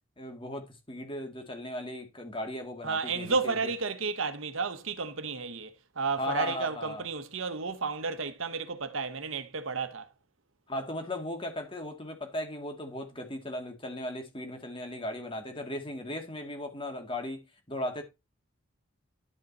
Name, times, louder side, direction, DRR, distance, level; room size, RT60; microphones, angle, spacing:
voice 1, 0.2-3.6 6.2-7.0 10.7-18.0, left 1 dB, 25° left, 2.1 m, -37 dB
voice 2, 2.8-10.1, right 4 dB, 75° right, 1.2 m, -32 dB
11.0 x 5.2 x 4.2 m
head